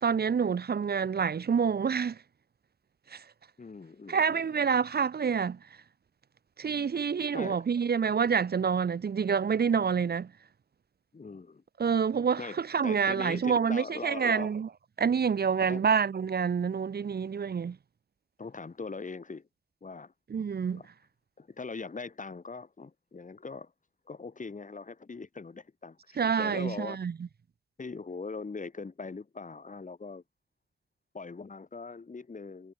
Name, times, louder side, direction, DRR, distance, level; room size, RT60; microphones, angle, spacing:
voice 1, 0.0-2.2 3.1-3.2 4.1-5.6 6.6-10.3 11.8-14.7 15.0-17.8 20.3-20.8 26.2-27.1, right 6 dB, 60° right, 0.9 m, -27 dB
voice 2, 3.6-4.5 7.3-7.6 11.1-11.6 12.4-14.5 15.7-15.8 18.4-19.5 19.8-20.1 20.7-20.9 21.4-23.7 24.1-27.0 27.8-30.2 31.1-32.7, left 4 dB, 45° left, 4.0 m, -41 dB
wide cardioid pair, 130°, 19 cm